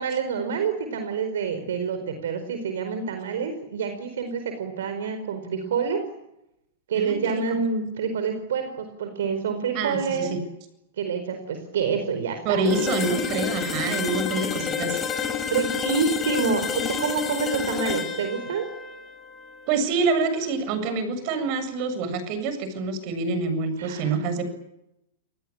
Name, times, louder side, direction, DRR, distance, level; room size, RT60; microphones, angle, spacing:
voice 1, 0.0-6.0 6.9-10.3 11.0-12.8 15.5-18.6 23.8-24.2, right 5 dB, 75° right, 8 dB, 4.6 m, -27 dB
voice 2, 9.7-10.3 12.4-15.0 19.7-24.5, right 4 dB, 50° right, 11 dB, 7.4 m, -26 dB
sound 1, 12.6-20.5, left 6 dB, 20° left, 4.6 m, -30 dB
29.0 x 20.0 x 8.8 m, 0.85 s
hypercardioid pair, 120°, 0 cm